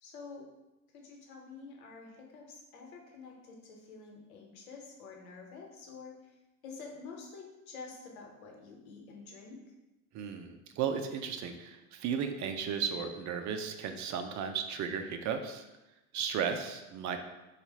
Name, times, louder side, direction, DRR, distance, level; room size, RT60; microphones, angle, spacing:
voice 1, 0.0-0.5 0.9-6.1 6.6-9.6, left 4 dB, 90° left, 0 dB, 1.0 m, -48 dB
voice 2, 10.1-15.7 16.1-17.2, right 7 dB, 45° right, 7 dB, 0.6 m, -35 dB
4.0 x 2.4 x 4.7 m, 1.0 s
supercardioid pair, 90°, 41 cm